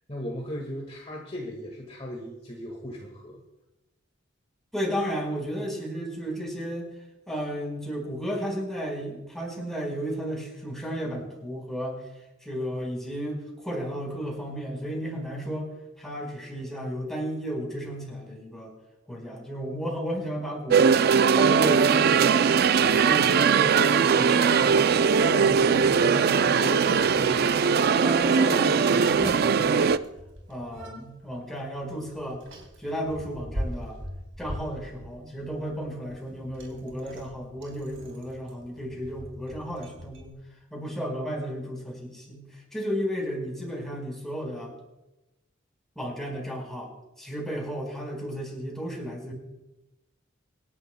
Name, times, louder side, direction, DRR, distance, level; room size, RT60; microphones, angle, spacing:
voice 1, 0.1-3.4, equal, 35° left, 0 dB, 1.7 m, -37 dB
voice 2, 4.7-6.9 7.3-12.1 12.4-15.7 16.0-18.7 19.1-21.0 21.3-22.4 22.8-24.8 25.1-27.6 27.9-30.0 30.5-32.4 32.8-34.0 34.4-40.3 40.7-44.8 45.9-46.9 47.2-49.3, equal, ahead, -2 dB, 4.4 m, -33 dB
sound 1, 20.7-30.0, right 6 dB, 55° right, 0.4 m, -20 dB
Bicycle, 25.1-40.3, equal, 75° right, 3.3 m, -43 dB
26.5 x 11.0 x 2.2 m, 0.99 s
head